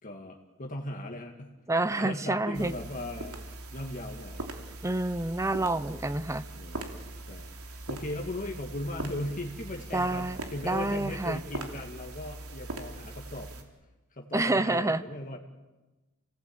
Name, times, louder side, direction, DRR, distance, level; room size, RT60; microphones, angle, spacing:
voice 1, 0.0-1.5 1.9-4.4 5.9-6.2 6.5-6.9 7.3-13.5 14.1-15.4, left 1 dB, 40° left, 2 dB, 2.1 m, -38 dB
voice 2, 1.7-2.7 4.8-6.4 9.9-10.4 10.6-11.4 14.3-15.0, right 2 dB, 15° right, 14 dB, 0.7 m, -28 dB
sound 1, 2.5-13.6, right 2 dB, 85° right, 3.3 m, -41 dB
29.5 x 18.0 x 8.8 m, 1.1 s
head